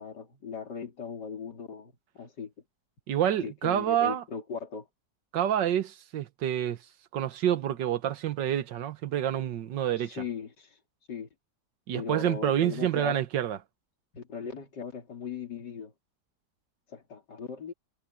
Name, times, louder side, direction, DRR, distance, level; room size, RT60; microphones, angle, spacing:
voice 1, 0.0-2.5 3.4-4.9 10.0-10.8 11.1-11.3 11.9-13.2 14.1-15.9 16.9-17.7, left 6 dB, 75° left, 3.6 m, -38 dB
voice 2, 3.1-4.2 5.3-6.8 7.1-10.2 11.9-13.6, right 10 dB, 85° right, 1.7 m, -28 dB
omnidirectional pair, 1.9 m